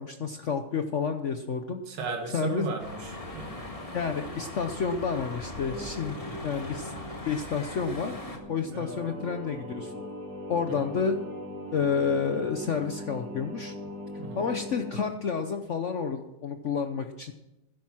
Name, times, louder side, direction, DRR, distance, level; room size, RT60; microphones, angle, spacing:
voice 1, 0.0-1.8 2.3-2.8 3.9-6.2 6.4-6.9 7.3-8.1 8.5-10.1 10.5-11.2 11.7-13.7 14.3-17.3, left 6 dB, 70° left, 7 dB, 0.6 m, -30 dB
voice 2, 1.9-3.7 6.2-6.4 8.8-8.9 14.2-14.4, right 3 dB, 75° right, 2 dB, 2.5 m, -36 dB
sound 1, 2.8-8.4, left 1 dB, 20° left, 1.5 m, -40 dB
Singing, 5.5-15.1, equal, 50° right, 3.2 m, -40 dB
12.0 x 10.0 x 6.1 m, 0.94 s
omnidirectional pair, 2.3 m